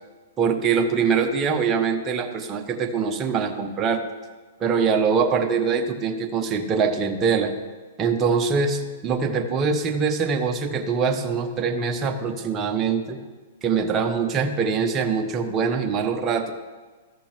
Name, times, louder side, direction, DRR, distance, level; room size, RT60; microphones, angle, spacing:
voice 1, 0.4-4.0 4.6-7.5 8.0-13.2 13.6-16.5, right 5 dB, 25° right, 4 dB, 1.0 m, -23 dB
14.0 x 5.9 x 3.5 m, 1.3 s
hypercardioid pair, 130°, 0 cm